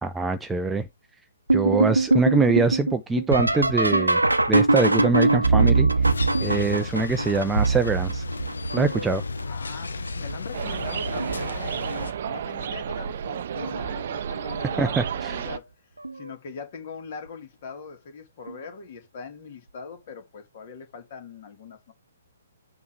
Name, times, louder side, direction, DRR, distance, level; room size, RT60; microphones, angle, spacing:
voice 1, 0.0-0.9 1.5-4.2 4.5-5.9 6.4-8.2 8.7-9.2 14.8-15.3, right 4 dB, 10° right, 0.6 m, -24 dB
sound 1, 1.5-9.2 9.8-10.4 10.8-11.5 12.7-12.8 13.5-13.9 16.0-16.1 18.5-18.6, right 3 dB, 85° right, 0.8 m, -22 dB
sound 2, 6.0-12.1, left 4 dB, 70° left, 0.7 m, -34 dB
voice 2, 9.5-15.7 16.1-21.9, left 5 dB, 40° left, 2.3 m, -41 dB
sound 3, 10.5-15.6, right 8 dB, 50° right, 0.6 m, -31 dB
7.1 x 3.1 x 6.0 m
figure-of-eight pair, 125°, 0 cm